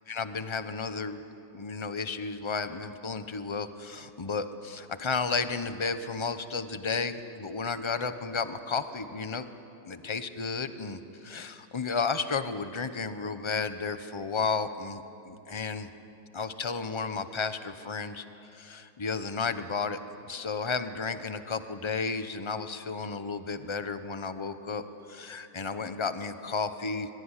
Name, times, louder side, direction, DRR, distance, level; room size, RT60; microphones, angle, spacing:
voice 1, 0.1-1.2 1.5-9.5 9.8-15.9 16.3-18.2 18.5-20.0 20.2-27.1, left 4 dB, 25° left, 10 dB, 0.6 m, -33 dB
25.5 x 22.5 x 9.9 m, 2.9 s
omnidirectional pair, 2.1 m